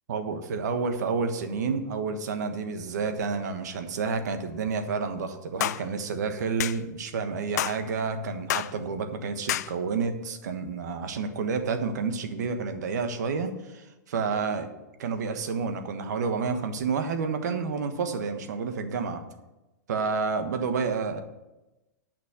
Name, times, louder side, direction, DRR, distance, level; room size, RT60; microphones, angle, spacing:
voice 1, 0.1-14.7 15.0-19.2 19.9-21.2, right 5 dB, 70° right, 7 dB, 1.3 m, -30 dB
sound 1, 5.6-5.8 6.6-6.8 7.6-7.8 8.5-8.7 9.5-9.7, left 12 dB, 65° left, 0.4 m, -28 dB
9.0 x 6.1 x 8.0 m, 1.0 s
hypercardioid pair, 120°, 10 cm